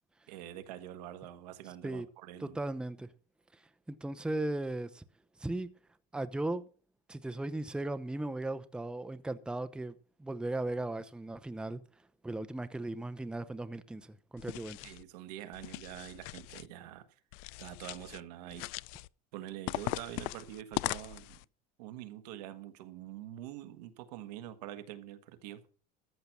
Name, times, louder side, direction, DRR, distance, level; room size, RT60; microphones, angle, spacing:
voice 1, 0.3-2.6 14.8-17.0 17.6-18.7 19.3-21.4 21.8-25.7, right 12 dB, 85° right, 1.5 m, -45 dB
voice 2, 2.4-3.1 3.9-5.0 5.4-5.7 6.1-6.7 7.1-9.9 10.2-11.8 12.2-14.8, right 2 dB, 5° right, 0.7 m, -37 dB
sound 1, 14.4-15.0 15.5-16.7 17.3-18.2 18.5-19.1 19.7-21.4, left 21 dB, 70° left, 0.4 m, -39 dB
14.0 x 6.8 x 5.9 m
supercardioid pair, 125°, 20 cm